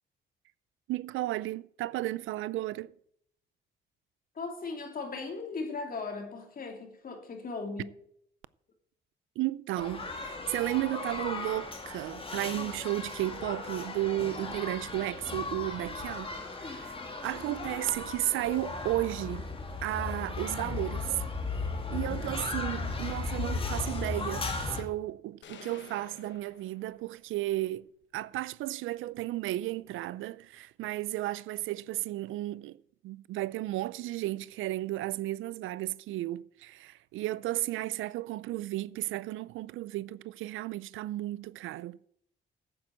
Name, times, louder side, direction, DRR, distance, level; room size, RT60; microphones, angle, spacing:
voice 1, 0.9-2.9 9.4-19.5 19.8-21.2 21.9-32.8 33.0-42.1, right 16 dB, 85° right, 0.5 m, -34 dB
voice 2, 4.3-7.9, left 4 dB, 45° left, 3.0 m, -38 dB
sound 1, 9.8-24.8, left 3 dB, 25° left, 2.3 m, -36 dB
sound 2, 25.4-27.4, left 8 dB, 65° left, 1.3 m, -52 dB
8.7 x 8.5 x 7.7 m
cardioid pair, 90°, 20 cm